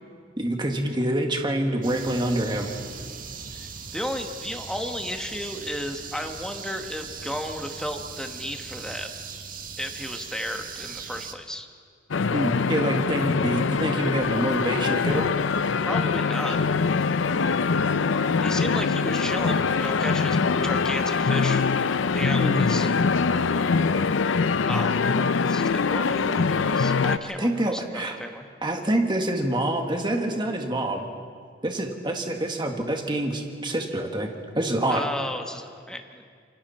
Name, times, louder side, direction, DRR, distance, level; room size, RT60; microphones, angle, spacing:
voice 1, 0.4-2.7 12.3-15.3 22.4-22.7 27.4-28.2 28.6-31.1 31.6-34.3 34.6-35.0, right 1 dB, 25° right, 3 dB, 1.9 m, -26 dB
sound 1, 1.8-11.3, right 6 dB, 50° right, 1.5 m, -39 dB
voice 2, 3.5-9.1 9.8-11.7 15.8-16.6 18.4-21.7 22.1-22.9 24.6-28.5 34.9-36.3, left 1 dB, 5° left, 4 dB, 1.3 m, -33 dB
sound 2, 12.1-27.2, left 5 dB, 80° left, 0.6 m, -23 dB
28.5 x 24.0 x 4.4 m, 2.1 s
head